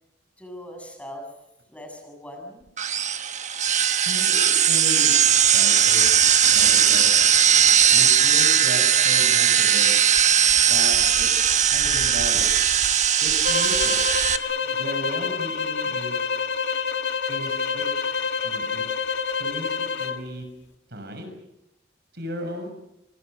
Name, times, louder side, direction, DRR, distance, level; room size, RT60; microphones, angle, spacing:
voice 1, 0.4-1.3 1.7-2.7 14.6-14.9, equal, 10° left, 2 dB, 7.7 m, -40 dB
sound 1, 2.8-14.4, right 9 dB, 40° right, 1.1 m, -19 dB
voice 2, 4.0-5.1 5.5-6.2 6.5-7.1 7.9-9.9 10.6-11.3 11.7-12.5 13.2-14.1 14.7-16.1 17.3-17.8 18.4-18.9 19.4-20.4 20.9-21.3 22.1-22.7, equal, 65° right, 6 dB, 6.8 m, -35 dB
sound 2, 13.4-20.2, left 5 dB, 80° left, 1.7 m, -27 dB
27.0 x 25.5 x 6.6 m, 0.85 s
head